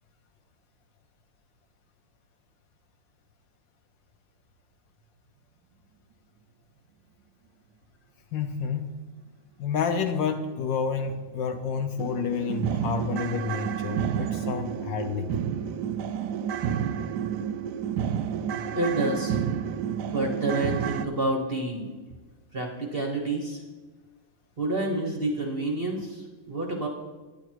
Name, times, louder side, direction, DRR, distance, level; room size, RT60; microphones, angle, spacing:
voice 1, 8.3-9.0 9.6-15.3, left 6 dB, 70° left, 7 dB, 1.2 m, -29 dB
sound 1, 11.1-11.2 11.6-11.7 12.0-21.1, right 8 dB, 75° right, 0.9 m, -30 dB
voice 2, 18.8-19.4 20.1-21.9 22.5-23.6 24.6-26.9, right 2 dB, 35° right, 1 dB, 1.1 m, -28 dB
10.5 x 9.8 x 4.6 m, 1.3 s
omnidirectional pair, 2.3 m